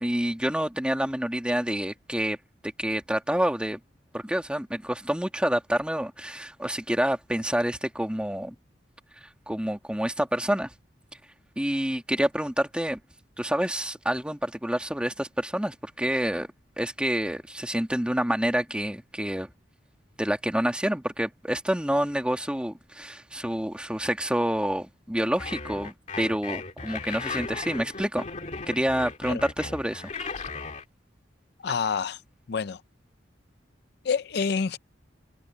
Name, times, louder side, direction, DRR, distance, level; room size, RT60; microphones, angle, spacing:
voice 1, 0.0-2.4 2.8-3.8 4.1-8.6 9.2-10.7 11.6-13.0 13.4-16.5 16.8-19.5 20.2-28.3 28.7-30.1, equal, 5° right, 1.8 m, -28 dB
sound 1, 25.4-30.8, left 4 dB, 40° left, 2.2 m, -36 dB
voice 2, 31.6-32.2 32.5-32.8 34.0-34.8, left 5 dB, 60° left, 0.5 m, -27 dB
head